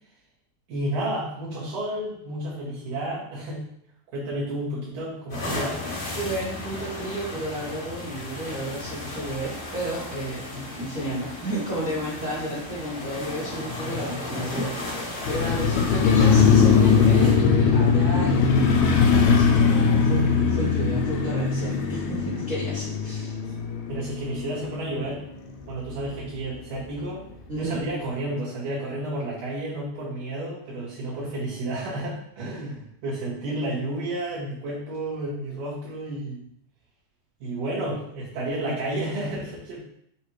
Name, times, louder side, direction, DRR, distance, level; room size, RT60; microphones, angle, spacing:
voice 1, 0.7-3.6 4.1-5.8 23.9-25.2 25.7-27.3 27.6-36.4 37.4-39.8, right 1 dB, 80° right, -9 dB, 3.5 m, -31 dB
sound 1, 5.3-17.4, left 2 dB, 20° left, 1.5 m, -35 dB
voice 2, 6.1-23.3 27.5-27.8, right 1 dB, 50° right, -9 dB, 1.0 m, -32 dB
Motorcycle, 15.2-25.4 25.7-25.8, left 6 dB, 80° left, 1.9 m, -20 dB
6.6 x 2.4 x 3.1 m, 0.69 s
omnidirectional pair, 3.4 m